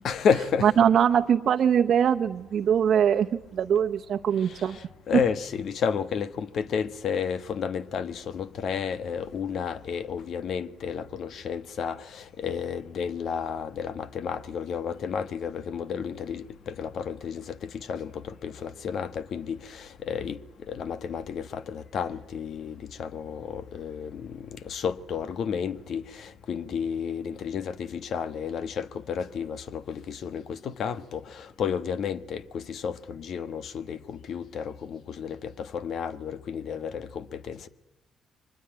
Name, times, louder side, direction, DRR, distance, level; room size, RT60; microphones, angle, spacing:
voice 1, 0.0-0.7 4.5-20.4 20.7-37.7, left 7 dB, 65° left, 1.3 m, -32 dB
voice 2, 0.6-4.8, right 8 dB, 60° right, 1.0 m, -22 dB
24.0 x 20.5 x 9.0 m
cardioid pair, 90°, 0 cm